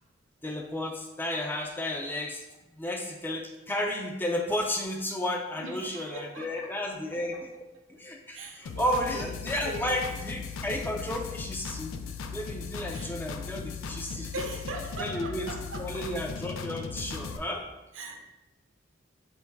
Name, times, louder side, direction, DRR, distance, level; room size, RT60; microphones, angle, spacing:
voice 1, 0.4-2.4 2.8-7.5 7.9-11.9 12.3-14.3 15.0-15.5 15.8-17.7, left 1 dB, 10° left, 0.3 m, -32 dB
voice 2, 5.6-6.8 7.1-7.4 8.3-10.0 12.9-13.1 14.2-16.1 17.3-17.4 17.9-18.2, right 2 dB, 75° right, 0.6 m, -40 dB
sound 1, 8.7-17.4, left 5 dB, 85° left, 0.4 m, -38 dB
3.4 x 3.0 x 4.5 m
head